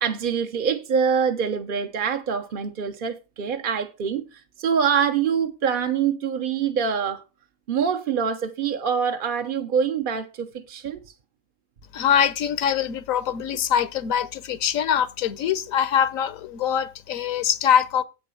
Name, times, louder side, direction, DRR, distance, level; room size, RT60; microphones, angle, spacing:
voice 1, 0.0-7.2 7.7-11.0, right 7 dB, 50° right, 0.7 m, -25 dB
voice 2, 11.9-18.0, left 9 dB, 70° left, 1.1 m, -23 dB
8.3 x 6.9 x 5.5 m
omnidirectional pair, 1.5 m